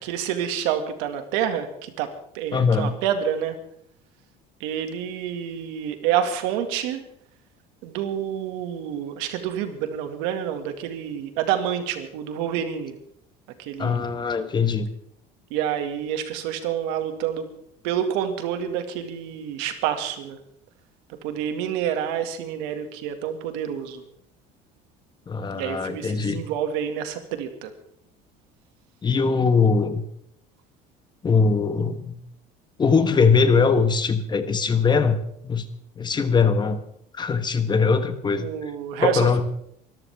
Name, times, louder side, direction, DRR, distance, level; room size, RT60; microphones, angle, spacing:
voice 1, 0.0-3.6 4.6-7.0 7.8-13.0 13.6-14.1 15.5-17.4 17.8-20.4 21.2-24.0 25.5-27.7 38.4-39.4, right 9 dB, 85° right, 7 dB, 2.2 m, -28 dB
voice 2, 2.5-2.9 13.8-14.9 25.3-26.4 29.0-30.0 31.2-32.2 32.8-35.7 36.0-36.8 37.1-38.5 39.0-39.4, left 5 dB, 25° left, 10 dB, 1.3 m, -21 dB
24.0 x 13.5 x 3.6 m, 0.72 s
cardioid pair, 125°, 18 cm